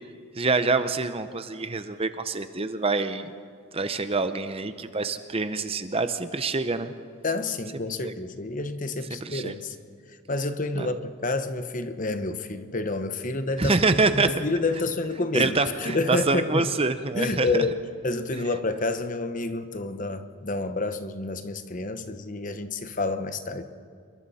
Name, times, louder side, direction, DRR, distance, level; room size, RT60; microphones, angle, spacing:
voice 1, 0.4-3.3 3.7-6.9 8.0-8.1 9.2-9.6 10.7-10.9 13.6-14.3 15.3-17.6, right 3 dB, 25° right, 10 dB, 0.7 m, -26 dB
voice 2, 7.2-9.8 10.3-16.7 17.1-23.6, left 3 dB, 35° left, 9 dB, 1.0 m, -29 dB
28.5 x 22.5 x 4.2 m, 2.2 s
head